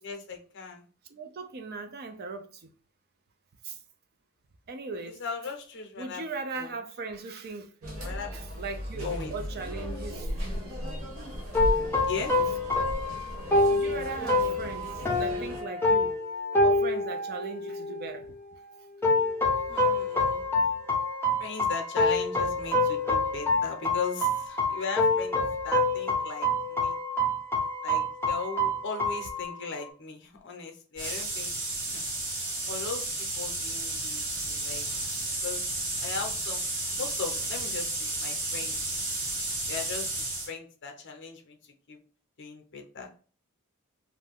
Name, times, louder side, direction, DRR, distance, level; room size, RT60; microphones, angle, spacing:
voice 1, 0.0-0.9 5.2-6.2 6.6-6.7 8.0-8.6 9.0-9.3 12.1-12.4 19.7-20.4 21.4-27.0 27.8-31.5 31.9-32.0 32.7-34.9 35.4-35.7 36.0-36.6 37.0-38.8 39.7-40.1 40.5-41.6 41.9-42.0 42.4-43.2, left 5 dB, 55° left, 0.6 m, -38 dB
voice 2, 1.1-2.7 3.6-3.8 4.7-5.2 6.0-7.7 8.3-10.4 13.7-16.2 16.6-18.3, right 4 dB, 45° right, 0.4 m, -38 dB
sound 1, 7.8-15.6, equal, 70° right, 0.8 m, -36 dB
sound 2, 11.5-18.1 19.0-29.9, left 2 dB, 10° left, 0.6 m, -27 dB
sound 3, 31.0-40.5, right 2 dB, 85° right, 1.5 m, -32 dB
2.5 x 2.2 x 3.4 m
head